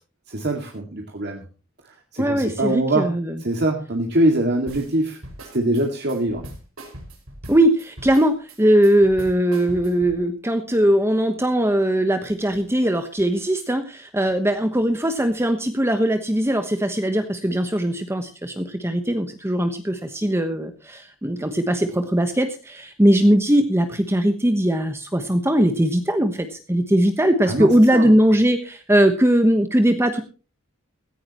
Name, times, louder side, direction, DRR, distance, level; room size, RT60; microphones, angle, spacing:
voice 1, 0.3-1.4 1.8-3.1 3.4-5.2 5.5-6.5 27.5-28.1, right 1 dB, 55° right, 2 dB, 2.2 m, -23 dB
voice 2, 2.2-3.4 7.5-30.2, right 1 dB, 10° right, 7 dB, 1.1 m, -20 dB
sound 1, 4.7-10.2, right 1 dB, 85° right, 5.8 m, -40 dB
17.0 x 15.0 x 3.0 m, 0.35 s
head